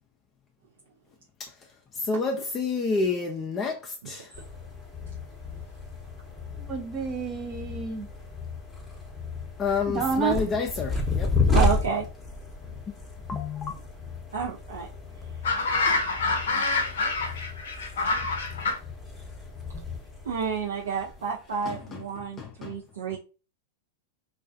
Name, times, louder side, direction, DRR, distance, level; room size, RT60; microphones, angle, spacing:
voice 1, 2.0-4.3 9.6-11.3 13.3-13.7 18.3-18.5 21.7-21.8 22.4-22.7, left 4 dB, 25° left, 0.4 m, -29 dB
sound 1, 4.3-21.8, left 3 dB, 5° left, 0.8 m, -32 dB
voice 2, 6.6-8.1 9.9-10.4, right 5 dB, 30° right, 0.6 m, -29 dB
voice 3, 11.5-12.0 14.3-14.9 20.3-23.2, right 6 dB, 85° right, 0.5 m, -30 dB
sound 2, 15.4-18.8, left 3 dB, 75° left, 0.5 m, -26 dB
2.3 x 2.3 x 2.5 m
hypercardioid pair, 115°, 0 cm